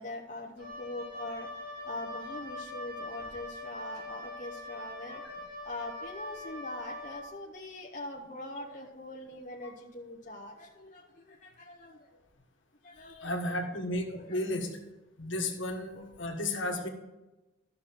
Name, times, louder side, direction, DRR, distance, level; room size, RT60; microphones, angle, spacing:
voice 1, 0.0-1.5 1.8-5.2 5.6-12.1 12.8-13.6 14.3-14.5 15.9-16.0, left 1 dB, 40° left, -1 dB, 0.9 m, -42 dB
Wind instrument woodwind instrument, 0.6-7.3, left 2 dB, 55° right, 2.7 m, -42 dB
voice 2, 13.1-14.7 15.2-16.9, left 1 dB, 70° left, 3 dB, 1.5 m, -34 dB
13.0 x 6.3 x 4.5 m, 1.1 s
head